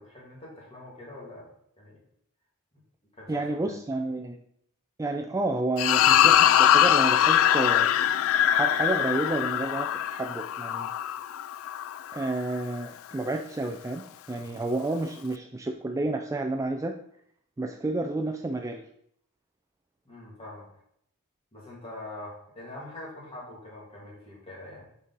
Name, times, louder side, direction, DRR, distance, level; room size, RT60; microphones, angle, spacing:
voice 1, 0.0-1.5 1.8-2.0 3.2-3.8 14.4-14.6 20.0-20.7 21.5-24.9, left 2 dB, 25° left, -5 dB, 2.4 m, -44 dB
voice 2, 3.3-4.4 5.0-7.9 8.5-10.9 12.1-14.0 14.3-16.9 17.6-18.8, right 2 dB, 15° right, 4 dB, 0.3 m, -30 dB
sound 1, 5.8-12.3, left 11 dB, 65° left, 0.3 m, -22 dB
6.2 x 5.3 x 4.0 m, 0.71 s
head